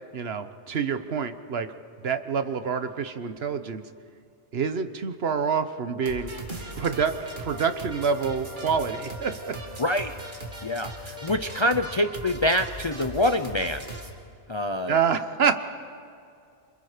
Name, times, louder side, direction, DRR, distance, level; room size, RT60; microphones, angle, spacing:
voice 1, 0.1-1.7 2.0-3.8 4.5-6.3 6.8-9.6 14.9-15.6, right 6 dB, 65° right, 10 dB, 1.2 m, -27 dB
sound 1, 6.0-14.1, right 1 dB, 45° right, 2.3 m, -38 dB
voice 2, 9.8-10.2 10.6-13.8 14.5-15.0, left 1 dB, 35° left, 8 dB, 0.5 m, -25 dB
28.5 x 26.5 x 5.0 m, 2.4 s
omnidirectional pair, 1.2 m